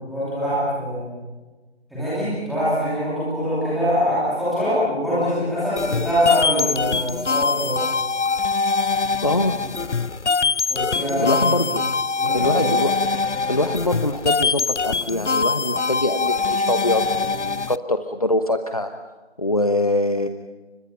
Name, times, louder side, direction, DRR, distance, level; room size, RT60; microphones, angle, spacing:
voice 1, 0.1-1.1 1.9-7.8 10.7-11.5 12.1-12.7, equal, ahead, -12 dB, 2.8 m, -23 dB
sound 1, 5.8-17.8, left 4 dB, 90° left, 0.7 m, -23 dB
voice 2, 9.2-9.5 11.2-11.8 12.3-12.9 13.5-18.9 19.4-20.3, left 1 dB, 35° left, 7 dB, 0.9 m, -23 dB
30.0 x 25.0 x 5.8 m, 1.2 s
figure-of-eight pair, 165°, 34 cm